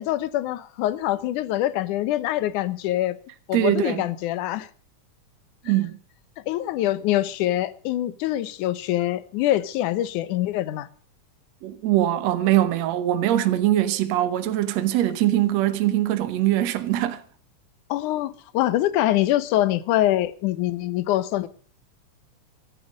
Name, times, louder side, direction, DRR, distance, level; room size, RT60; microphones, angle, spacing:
voice 1, 0.0-3.2 3.5-4.7 6.5-10.9 17.9-21.5, left 14 dB, 75° left, 2.3 m, -24 dB
voice 2, 3.5-4.0 5.7-6.0 11.6-17.2, right 13 dB, 65° right, 2.0 m, -22 dB
14.0 x 12.5 x 6.3 m
omnidirectional pair, 3.7 m